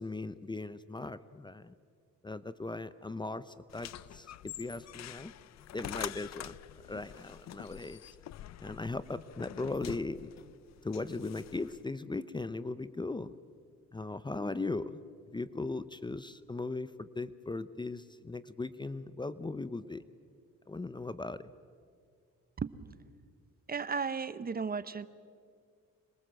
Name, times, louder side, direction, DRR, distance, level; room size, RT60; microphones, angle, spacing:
voice 1, 0.0-1.7 2.2-5.3 5.7-8.0 8.6-10.3 10.8-13.3 13.9-15.0 15.3-20.0 20.7-21.5, left 3 dB, 15° left, 15 dB, 0.7 m, -38 dB
sound 1, 3.7-11.8, left 12 dB, 60° left, 0.6 m, -46 dB
voice 2, 23.7-25.1, right 5 dB, 30° right, 15 dB, 0.8 m, -35 dB
26.0 x 21.5 x 7.7 m, 2.2 s
cardioid pair, 90°, 30 cm